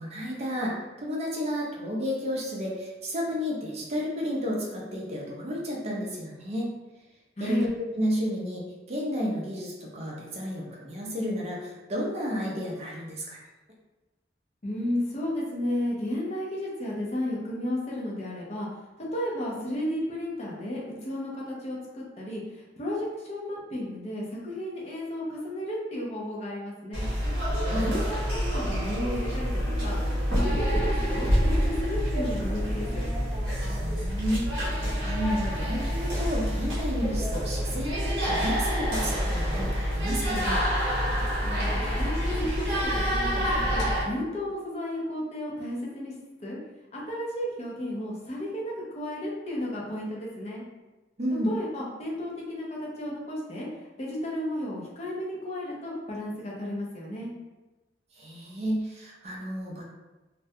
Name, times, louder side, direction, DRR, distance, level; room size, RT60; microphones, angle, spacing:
voice 1, 0.0-6.7 7.4-13.4 27.7-28.0 33.8-40.6 51.2-51.5 58.2-59.8, equal, 35° right, -3 dB, 0.4 m, -32 dB
voice 2, 7.4-7.7 14.6-18.7 19.1-27.1 27.7-30.0 30.3-33.1 41.4-46.1 46.4-46.6 46.9-50.6 51.5-53.7 54.0-57.3, left 1 dB, 35° left, -4 dB, 0.5 m, -33 dB
sound 1, 26.9-44.0, equal, 60° right, 0.8 m, -27 dB
2.3 x 2.1 x 2.7 m, 1.1 s
head